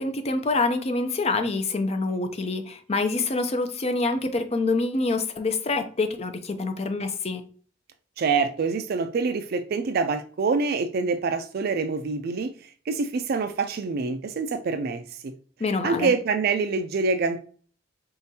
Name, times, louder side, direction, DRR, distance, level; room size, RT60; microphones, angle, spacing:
voice 1, 0.0-7.4 15.6-16.1, left 3 dB, 35° left, 0.5 m, -26 dB
voice 2, 8.2-15.3 15.8-17.4, right 4 dB, 55° right, 0.4 m, -26 dB
4.1 x 3.7 x 2.7 m
head